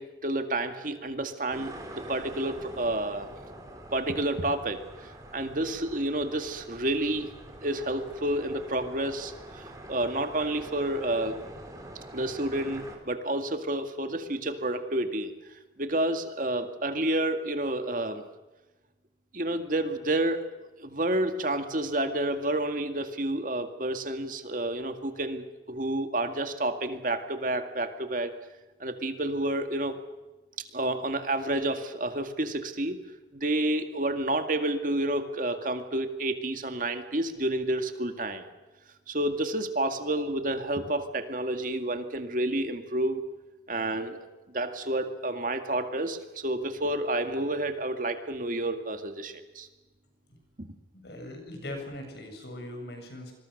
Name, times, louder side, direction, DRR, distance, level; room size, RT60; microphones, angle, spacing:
voice 1, 0.0-3.3 3.9-7.3 7.6-11.4 12.1-15.3 15.8-18.2 19.3-20.4 20.8-28.3 28.8-30.0 30.7-33.0 33.3-38.5 39.1-43.2 43.7-44.2 44.5-49.7 50.6-50.7, right 1 dB, 45° right, 7 dB, 2.1 m, -30 dB
sound 1, 1.5-13.0, right 1 dB, 20° right, 4.0 m, -45 dB
voice 2, 51.0-53.3, left 1 dB, 65° left, 5 dB, 7.0 m, -40 dB
26.5 x 22.0 x 6.6 m, 1.1 s
head